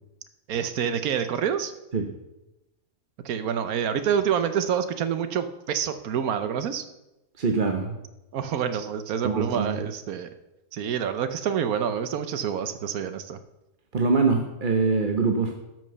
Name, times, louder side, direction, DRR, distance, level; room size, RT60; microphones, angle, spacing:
voice 1, 0.5-1.7 3.2-6.8 8.3-10.3 10.7-13.4, right 8 dB, 80° right, 10 dB, 1.2 m, -27 dB
voice 2, 7.4-8.0 9.2-9.8 13.9-15.5, right 4 dB, 40° right, 3 dB, 0.9 m, -23 dB
12.5 x 6.2 x 6.8 m, 0.94 s
omnidirectional pair, 1.5 m